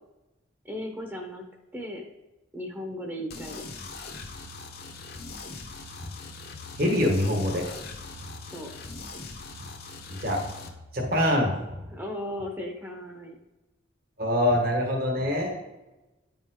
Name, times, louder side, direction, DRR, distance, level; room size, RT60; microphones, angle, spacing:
voice 1, 0.6-1.4 1.7-2.0 2.5-3.6 8.5-8.7 11.9-13.3, left 1 dB, 10° right, 3 dB, 1.0 m, -36 dB
sound 1, 3.3-10.7, left 3 dB, 50° left, 1.1 m, -41 dB
voice 2, 6.8-7.6 9.6-9.7 10.2-10.4 10.9-11.8 14.2-15.6, left 1 dB, 50° right, 0 dB, 1.5 m, -25 dB
10.0 x 5.4 x 3.8 m, 1.1 s
head